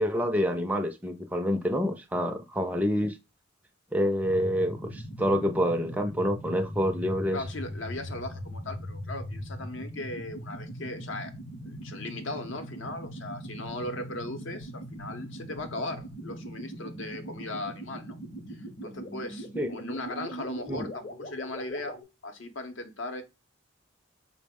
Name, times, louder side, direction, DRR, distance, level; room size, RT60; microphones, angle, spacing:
voice 1, 0.0-3.1 3.9-7.4 19.6-19.7 20.7-20.9, equal, 10° right, 0.4 m, -27 dB
sound 1, 4.2-22.0, equal, 45° left, 0.7 m, -40 dB
voice 2, 7.3-11.3 11.7-18.2 18.5-22.0 22.2-23.2, left 2 dB, 75° left, 0.7 m, -38 dB
4.7 x 2.0 x 3.5 m
head